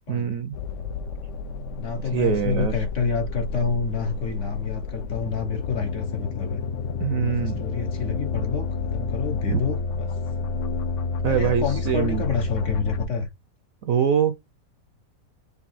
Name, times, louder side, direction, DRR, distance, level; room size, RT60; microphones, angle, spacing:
voice 1, 0.1-0.6 2.1-2.7 7.0-7.6 9.5-9.6 11.2-12.2 13.8-14.3, right 8 dB, 70° right, 0.8 m, -23 dB
sound 1, 0.5-13.1, left 4 dB, 80° left, 0.6 m, -30 dB
voice 2, 1.8-6.6 7.3-10.1 11.3-13.3, left 5 dB, 55° left, 1.0 m, -28 dB
5.3 x 2.4 x 4.1 m
omnidirectional pair, 1.9 m